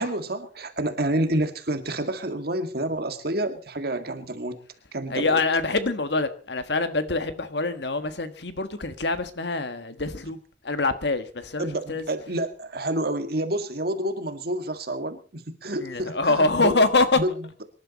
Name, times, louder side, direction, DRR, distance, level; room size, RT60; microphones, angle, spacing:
voice 1, 0.0-4.6 4.9-5.4 11.6-16.8 17.2-17.6, right 1 dB, 55° right, 1.9 m, -29 dB
voice 2, 5.1-10.4 10.6-12.0 15.8-17.2, left 3 dB, 65° left, 1.5 m, -25 dB
24.5 x 11.5 x 4.2 m
head